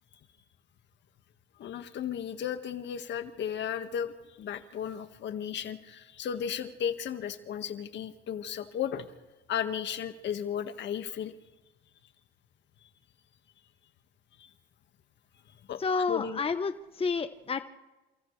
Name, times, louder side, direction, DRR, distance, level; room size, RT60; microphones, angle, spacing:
voice 1, 1.6-9.1 9.5-11.3 14.4-14.5 15.7-16.4, left 8 dB, 60° left, 8 dB, 1.8 m, -35 dB
voice 2, 15.8-17.6, left 4 dB, 25° left, 9 dB, 1.1 m, -30 dB
29.5 x 27.5 x 3.3 m, 1.1 s
supercardioid pair, 85°, 21 cm